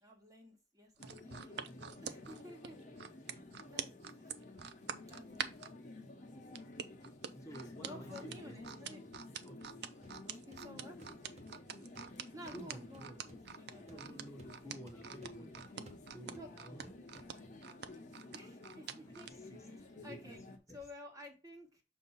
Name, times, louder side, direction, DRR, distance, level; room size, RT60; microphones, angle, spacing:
voice 1, 0.0-3.2 3.6-4.7 5.0-5.7 7.8-9.1 10.5-11.0 12.3-14.1 16.3-16.5 18.3-19.3 19.7-19.8 20.0-20.4 20.7-21.8, left 1 dB, 20° right, 1.4 m, -53 dB
sound 1, 1.0-20.6, left 2 dB, 45° left, 1.1 m, -52 dB
sound 2, 1.0-5.7 6.6-19.4 19.8-20.0, right 8 dB, 65° right, 0.5 m, -45 dB
voice 2, 7.0-8.6 9.4-9.7 12.2-13.2 13.9-17.2 19.0-19.7 19.9-20.4 20.7-20.8, right 1 dB, 20° left, 1.1 m, -52 dB
sound 3, 10.0-17.8, equal, 40° right, 1.1 m, -63 dB
6.8 x 2.8 x 5.6 m
head